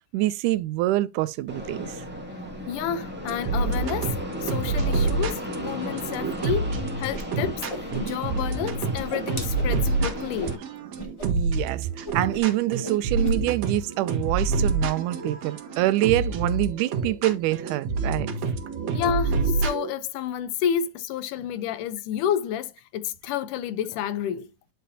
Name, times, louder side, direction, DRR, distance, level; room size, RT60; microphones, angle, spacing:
voice 1, 0.1-2.0 11.3-11.9 12.1-18.3, right 16 dB, 80° right, 2.0 m, -25 dB
Fixed-wing aircraft airplane, 1.5-10.5, left 1 dB, 5° right, 1.4 m, -35 dB
voice 2, 2.7-10.6 18.9-24.5, left 9 dB, 80° left, 2.3 m, -30 dB
sound 1, 3.3-19.9, right 4 dB, 60° right, 2.4 m, -28 dB
Whoosh swoosh swish, 7.1-7.2 7.5-8.4 8.7-10.6 11.0-11.3 11.5-11.7 12.0-12.6 12.8-13.4, right 1 dB, 20° left, 0.7 m, -36 dB
10.0 x 5.6 x 2.7 m
omnidirectional pair, 3.7 m